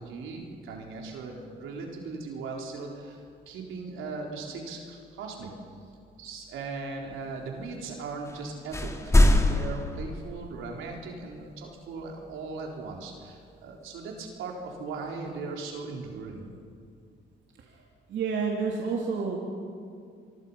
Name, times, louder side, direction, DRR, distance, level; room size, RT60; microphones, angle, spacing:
voice 1, 0.0-5.5 6.2-16.5, right 4 dB, 85° right, 0 dB, 4.1 m, -38 dB
sound 1, 8.3-8.4 8.7-10.8, left 1 dB, 15° left, 2.2 m, -23 dB
voice 2, 18.1-19.4, right 5 dB, 70° right, -1 dB, 2.9 m, -29 dB
26.0 x 23.5 x 5.7 m, 2.3 s
cardioid pair, 90°, 20 cm